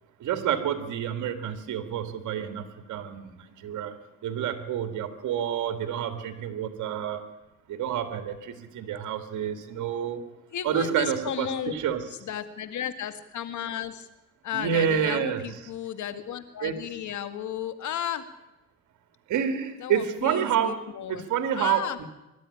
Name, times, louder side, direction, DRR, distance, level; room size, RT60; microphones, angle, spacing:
voice 1, 0.2-3.9 4.2-7.2 7.7-10.2 10.6-12.0 14.5-15.4 16.6-16.8 19.3-20.8 21.1-22.1, right 9 dB, 75° right, 9 dB, 2.2 m, -28 dB
voice 2, 10.5-11.7 12.2-14.1 14.4-18.3 19.8-21.3 21.5-22.0, left 10 dB, 70° left, 11 dB, 2.0 m, -34 dB
23.5 x 12.5 x 9.9 m, 0.98 s
cardioid pair, 90°, 30 cm